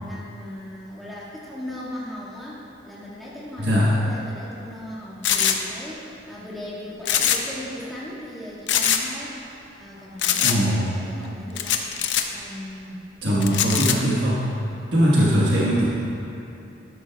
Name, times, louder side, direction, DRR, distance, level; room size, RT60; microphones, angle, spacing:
voice 1, 0.0-9.4 9.8-11.8 12.3-13.7 15.1-15.3, left 1 dB, ahead, -9 dB, 1.9 m, -38 dB
voice 2, 3.6-3.9 10.4-10.9 13.2-14.6 14.9-15.8, equal, 65° right, -7 dB, 1.4 m, -20 dB
sound 1, 5.2-5.6 7.0-7.6 7.8-7.9 8.7-9.0 10.2-10.6 11.6-12.2 13.4-13.9, left 9 dB, 70° left, 0.6 m, -22 dB
12.5 x 11.5 x 2.4 m, 2.8 s
head